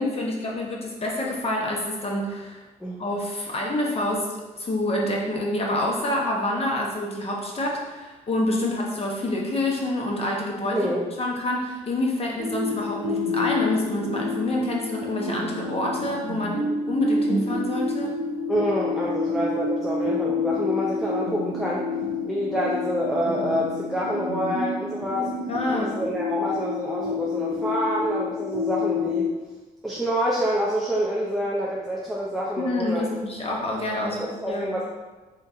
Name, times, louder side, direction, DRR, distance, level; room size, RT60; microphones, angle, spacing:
voice 1, 0.0-2.6 3.0-4.3 4.6-10.9 11.2-18.1 25.5-26.0 32.6-34.7, left 1 dB, 40° left, -2 dB, 1.0 m, -27 dB
voice 2, 10.7-11.0 18.5-21.8 22.2-25.3 25.7-29.3 29.8-33.1 34.2-34.8, equal, ahead, -5 dB, 0.6 m, -27 dB
sound 1, 12.4-29.3, left 3 dB, 80° right, 0.6 m, -28 dB
3.7 x 2.7 x 3.5 m, 1.2 s
cardioid pair, 70°, 16 cm